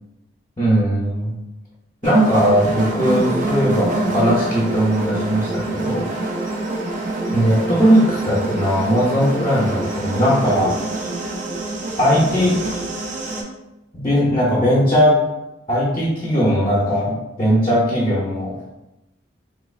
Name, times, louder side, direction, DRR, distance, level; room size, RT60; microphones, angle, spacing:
voice 1, 0.6-1.3 2.0-6.1 7.3-10.8 12.0-12.6 13.9-15.2 15.7-18.6, equal, 25° left, -6 dB, 0.6 m, -18 dB
sound 1, 2.0-13.4, right 2 dB, 45° right, 0.4 m, -26 dB
3.2 x 3.1 x 2.3 m, 0.95 s
head